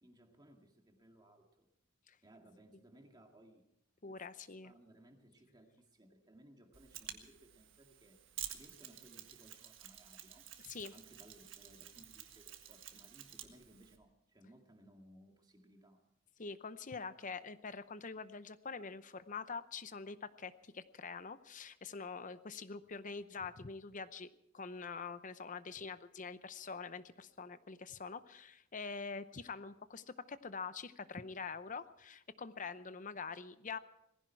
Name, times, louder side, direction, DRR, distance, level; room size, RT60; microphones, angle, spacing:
voice 1, 0.0-1.7 2.2-3.6 4.0-8.2 8.5-10.5 10.9-16.0, right 1 dB, 20° right, 3 dB, 2.0 m, -62 dB
voice 2, 4.0-4.7 10.6-10.9 16.4-24.3 24.5-33.8, left 5 dB, 40° left, 13 dB, 0.7 m, -45 dB
Mechanisms, 6.7-14.0, right 11 dB, 70° right, 1.6 m, -51 dB
19.5 x 15.5 x 4.6 m, 0.79 s
head